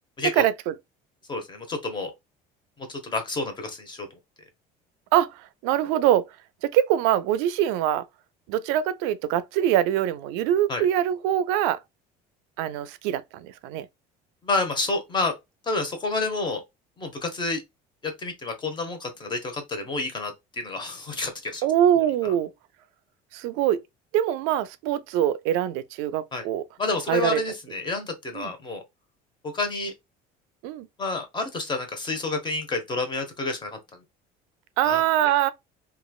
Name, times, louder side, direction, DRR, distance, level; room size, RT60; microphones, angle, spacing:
voice 1, 0.3-0.7 5.1-6.3 6.6-8.0 8.5-11.8 12.6-13.9 21.6-22.5 23.3-23.8 24.1-26.7 27.1-27.4 28.3-28.5 30.6-30.9 34.8-35.5, right 11 dB, 85° right, 0.4 m, -23 dB
voice 2, 1.3-2.1 2.8-4.1 10.7-10.9 14.4-15.3 15.7-16.6 17.0-17.6 18.0-21.6 26.3-26.4 26.8-28.8 29.5-29.9 31.0-33.8 34.8-35.0, left 3 dB, 25° left, 0.9 m, -29 dB
3.0 x 2.4 x 2.3 m
cardioid pair, 115°, 19 cm